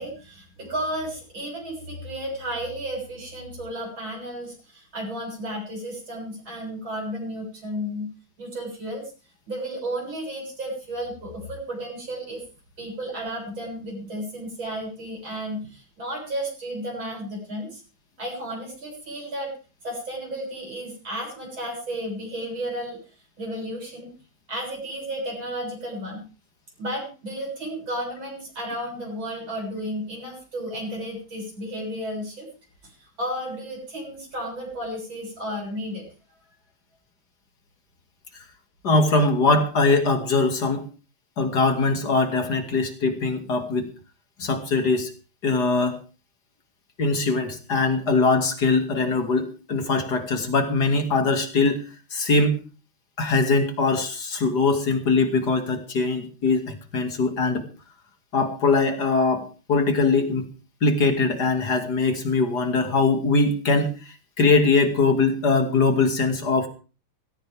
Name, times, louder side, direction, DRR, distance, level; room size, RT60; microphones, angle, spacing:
voice 1, 0.0-8.1 8.4-9.1 9.5-12.4 12.8-17.8 18.2-19.5 19.8-23.0 23.4-24.1 24.5-26.2 26.8-32.5 32.8-36.0, equal, 75° right, -1 dB, 7.9 m, -33 dB
voice 2, 38.8-40.9 41.4-43.9 44.4-45.1 45.4-46.0 47.0-51.8 52.1-52.5 53.2-57.6 58.3-60.5 60.8-63.9 64.4-66.7, left 3 dB, 55° left, 6 dB, 2.9 m, -21 dB
17.5 x 17.0 x 3.6 m, 0.36 s
omnidirectional pair, 2.2 m